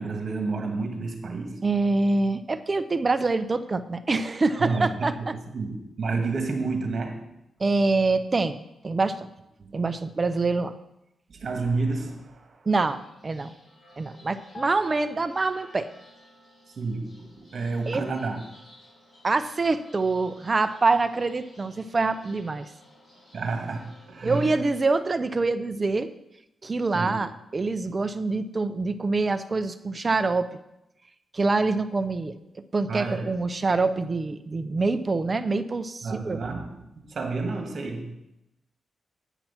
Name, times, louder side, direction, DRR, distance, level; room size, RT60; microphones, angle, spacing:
voice 1, 0.0-1.6 4.6-7.3 9.6-9.7 11.3-12.7 16.7-18.4 23.3-24.6 26.9-27.2 32.9-33.4 36.0-38.1, right 3 dB, 55° right, 4 dB, 1.9 m, -30 dB
voice 2, 1.6-5.3 7.6-8.6 8.8-9.3 9.7-10.7 12.7-13.5 14.0-15.9 17.9-18.0 19.2-22.7 24.2-26.1 26.6-30.5 31.3-36.4, right 3 dB, 35° right, 12 dB, 0.6 m, -25 dB
sound 1, 12.7-24.8, equal, 30° left, 4.0 m, -55 dB
sound 2, 14.5-16.2 16.4-16.7, left 1 dB, 50° left, 1.0 m, -47 dB
9.1 x 6.0 x 5.9 m, 0.86 s
cardioid pair, 85°, 0 cm